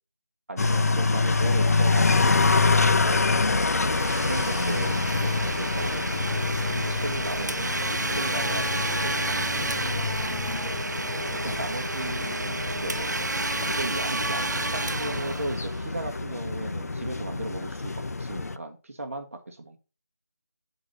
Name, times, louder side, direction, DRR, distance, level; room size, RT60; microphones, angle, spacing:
voice 1, 0.5-3.4 4.2-9.9 11.4-13.5 13.8-19.8, right 2 dB, 50° right, 4 dB, 1.1 m, -37 dB
sound 1, 0.6-18.6, left 3 dB, 65° left, 0.6 m, -26 dB
Domestic sounds home sounds, 3.6-16.2, right 2 dB, 85° right, 0.8 m, -31 dB
8.1 x 3.9 x 5.2 m, 0.33 s
figure-of-eight pair, 175°, 9 cm